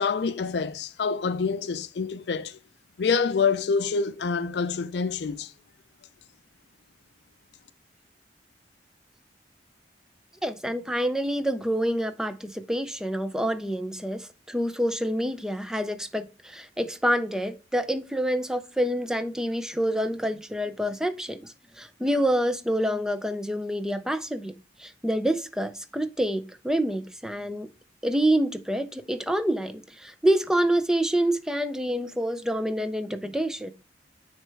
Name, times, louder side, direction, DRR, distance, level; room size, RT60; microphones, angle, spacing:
voice 1, 0.0-2.6 3.0-5.5, left 5 dB, 65° left, 0.4 m, -26 dB
voice 2, 10.4-24.5 24.8-27.7 28.0-33.7, right 1 dB, 5° right, 0.4 m, -27 dB
9.3 x 3.3 x 3.3 m
head